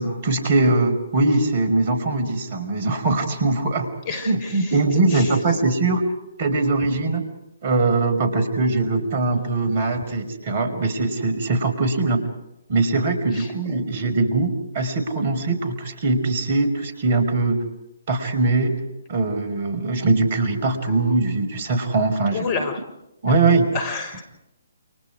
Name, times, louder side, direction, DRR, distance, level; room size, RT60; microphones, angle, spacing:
voice 1, 0.0-3.9 4.2-6.0 6.4-7.2 7.6-12.2 12.7-17.6 18.1-18.8 19.1-22.4 23.2-23.7, right 3 dB, 45° right, 8 dB, 5.0 m, -21 dB
voice 2, 4.1-4.8 5.1-5.3 13.3-13.5 22.3-22.8 23.7-24.3, left 4 dB, 30° left, 6 dB, 6.3 m, -29 dB
30.0 x 28.5 x 4.9 m, 0.86 s
figure-of-eight pair, 135°, 0 cm